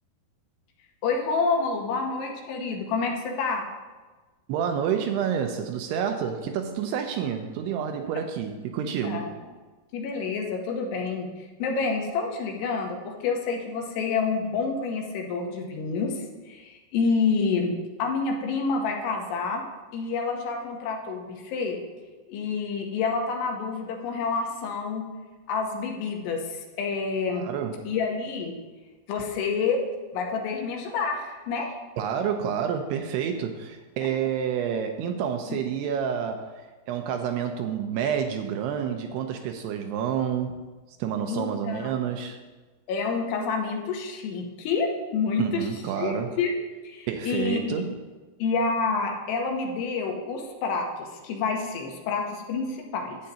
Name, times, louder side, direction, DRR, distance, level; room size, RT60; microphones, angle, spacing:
voice 1, 1.0-3.6 9.0-9.3 9.9-19.6 19.9-21.8 22.3-25.0 25.5-27.5 27.9-28.5 29.1-29.8 30.1-31.7 35.5-35.6 41.3-41.9 42.9-45.6 46.0-46.5 46.8-47.6 48.4-53.2, left 4 dB, 80° left, 2 dB, 3.0 m, -28 dB
voice 2, 4.5-9.3 27.3-27.9 32.0-40.6 41.0-42.4 45.4-46.3 47.1-48.0, right 8 dB, 80° right, 5 dB, 2.5 m, -29 dB
12.0 x 8.5 x 2.8 m, 1.3 s
omnidirectional pair, 5.0 m